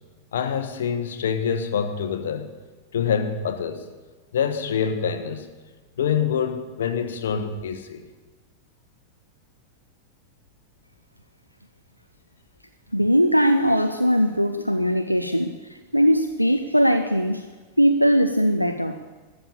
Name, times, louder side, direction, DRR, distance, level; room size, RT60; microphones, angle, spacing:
voice 1, 0.3-2.5 2.9-3.9 4.3-5.5 6.0-8.0, left 7 dB, 60° left, 1.1 m, -25 dB
voice 2, 12.9-15.5 15.9-17.4 17.8-19.0, equal, 90° left, 0.5 m, -20 dB
13.0 x 7.1 x 8.5 m
figure-of-eight pair, 90°, 0 cm